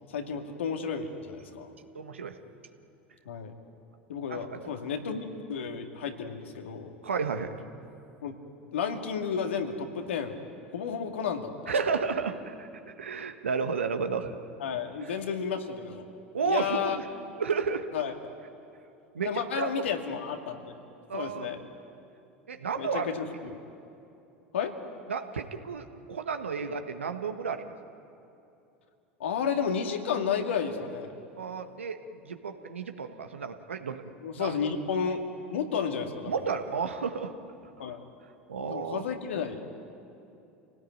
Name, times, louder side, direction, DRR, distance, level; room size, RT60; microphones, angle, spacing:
voice 1, 0.1-1.7 3.3-3.5 4.1-6.9 8.2-8.3 8.7-10.3 10.7-11.7 14.6-16.1 16.4-17.0 17.9-18.1 19.2-20.8 21.1-21.6 22.8-23.6 24.5-24.7 26.6-26.7 29.2-31.1 34.2-35.2 35.5-36.3 37.8-38.1 38.7-39.6, left 6 dB, 75° left, 4 dB, 2.2 m, -32 dB
voice 2, 1.9-2.4 4.3-4.7 7.0-7.5 11.7-12.7 13.0-14.3 15.0-15.1 16.3-17.1 17.4-17.8 19.1-19.3 19.6-19.9 21.1-21.5 22.5-23.1 25.1-27.7 31.4-32.0 32.2-34.1 34.4-34.6 36.3-37.3 38.5-39.0, right 5 dB, 85° right, 7 dB, 1.5 m, -32 dB
27.5 x 18.0 x 9.5 m, 2.7 s
hypercardioid pair, 80°, 6 cm